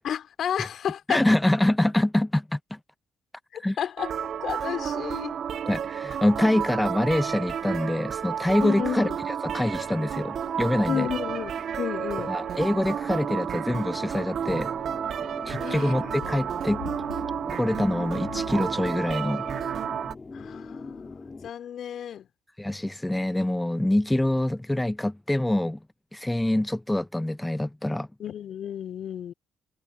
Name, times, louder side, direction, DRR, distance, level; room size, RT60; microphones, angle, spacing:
voice 1, 0.0-1.3 3.5-4.1 4.4-5.3 8.6-9.2 10.9-11.5 11.8-12.3 15.6-16.2 20.3-22.3 28.2-29.3, left 9 dB, 60° left, 2.6 m, -32 dB
voice 2, 1.1-2.8 3.6-3.8 5.7-9.1 9.4-11.1 12.2-14.7 15.5-16.8 17.5-19.5 22.6-25.8 26.1-28.1, left 1 dB, 10° left, 0.6 m, -25 dB
sound 1, 4.0-20.1, right 8 dB, 55° right, 1.5 m, -31 dB
sound 2, 9.6-21.5, left 3 dB, 30° left, 3.1 m, -44 dB
sound 3, 15.9-19.3, left 24 dB, 80° left, 1.7 m, -44 dB
hypercardioid pair, 45°, 0 cm